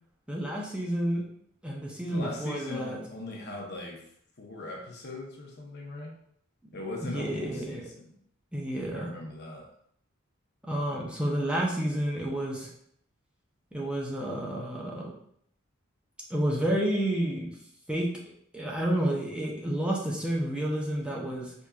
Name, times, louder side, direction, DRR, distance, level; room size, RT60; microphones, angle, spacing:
voice 1, 0.3-1.2 1.6-3.0 7.0-7.8 8.5-9.1 10.6-12.7 13.7-15.1 16.3-17.5 17.9-18.1 18.5-21.5, right 1 dB, 5° right, -3 dB, 0.5 m, -30 dB
voice 2, 2.1-4.1 4.4-6.1 6.7-8.1 8.9-9.7, left 2 dB, 55° left, 0 dB, 0.7 m, -39 dB
4.5 x 2.6 x 2.3 m, 0.68 s
head